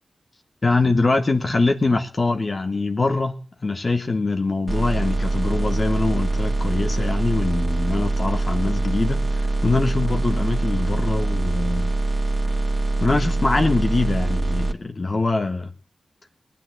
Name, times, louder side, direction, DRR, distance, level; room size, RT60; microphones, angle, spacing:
voice 1, 0.6-3.4 3.6-9.2 9.6-11.9 13.0-15.7, left 3 dB, 45° left, 6 dB, 1.5 m, -23 dB
sound 1, 4.7-14.7, right 2 dB, 40° right, 2.1 m, -23 dB
18.5 x 9.3 x 7.9 m, 0.44 s
cardioid pair, 50°, 0 cm